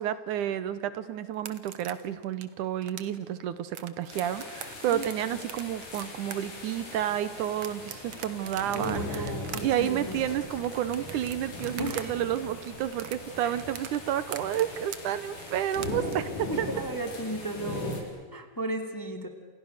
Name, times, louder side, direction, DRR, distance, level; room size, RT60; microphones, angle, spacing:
voice 1, 0.0-9.3 9.6-16.7, right 11 dB, 80° right, 13 dB, 2.5 m, -30 dB
sound 1, 1.3-12.1 12.3-16.1, right 10 dB, 60° right, 2.0 m, -43 dB
sound 2, 4.1-18.0, left 2 dB, 75° left, 6.5 m, -39 dB
voice 2, 8.7-10.2 11.8-12.1 13.4-13.5 16.5-19.3, right 1 dB, 5° left, 5 dB, 1.8 m, -35 dB
29.0 x 28.5 x 6.6 m, 1.4 s
omnidirectional pair, 3.6 m